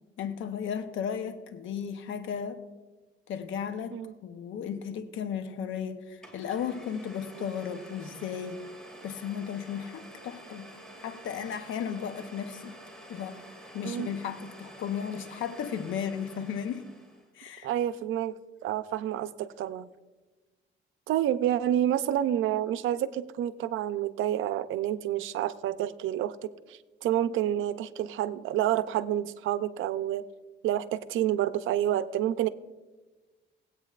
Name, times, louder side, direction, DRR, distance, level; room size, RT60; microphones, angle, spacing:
voice 1, 0.2-2.6 3.3-8.6 9.0-10.7 11.0-12.8 13.1-13.4 13.7-16.8 17.3-17.7, left 8 dB, 80° left, 9 dB, 0.8 m, -35 dB
Domestic sounds home sounds, 5.7-5.8 6.2-17.3, right 1 dB, 5° left, 2.4 m, -49 dB
voice 2, 17.6-18.3 18.6-19.9 21.1-30.3 30.6-32.5, right 11 dB, 80° right, 13 dB, 0.6 m, -29 dB
19.5 x 8.6 x 2.4 m, 1.2 s
cardioid pair, 90°, 20 cm